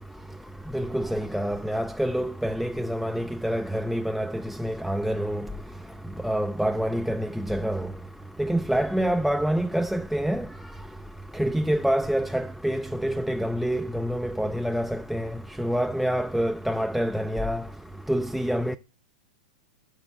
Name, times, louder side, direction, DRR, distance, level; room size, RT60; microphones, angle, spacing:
voice 1, 0.7-5.4 6.2-7.9 8.4-10.4 11.4-15.3 15.6-17.6 18.1-18.8, equal, ahead, 0.3 m, -26 dB
6.4 x 5.5 x 6.2 m
hypercardioid pair, 120°, 4 cm